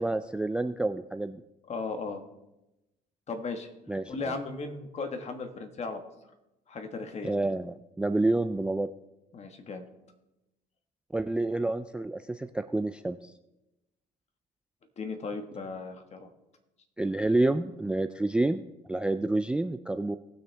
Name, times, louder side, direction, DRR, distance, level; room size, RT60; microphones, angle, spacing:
voice 1, 0.0-1.4 3.9-4.1 7.2-8.9 11.1-13.3 17.0-18.6 18.9-20.2, right 2 dB, 5° right, 12 dB, 0.3 m, -28 dB
voice 2, 1.7-2.2 3.3-3.7 4.1-6.1 6.7-7.3 9.3-9.8 15.0-16.3, left 4 dB, 40° left, 6 dB, 1.5 m, -36 dB
19.0 x 6.4 x 3.4 m, 0.94 s
cardioid pair, 110°, 17 cm